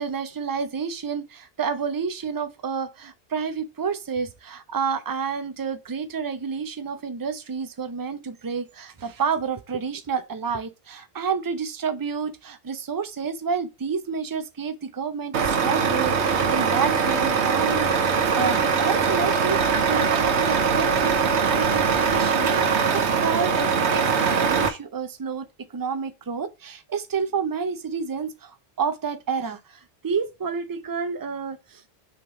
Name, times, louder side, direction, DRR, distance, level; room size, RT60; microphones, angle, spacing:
voice 1, 0.0-25.5 25.7-31.8, right 6 dB, 30° right, 0.4 m, -29 dB
Truck, 15.3-24.7, right 5 dB, 80° right, 1.1 m, -22 dB
6.2 x 3.2 x 4.9 m
omnidirectional pair, 1.1 m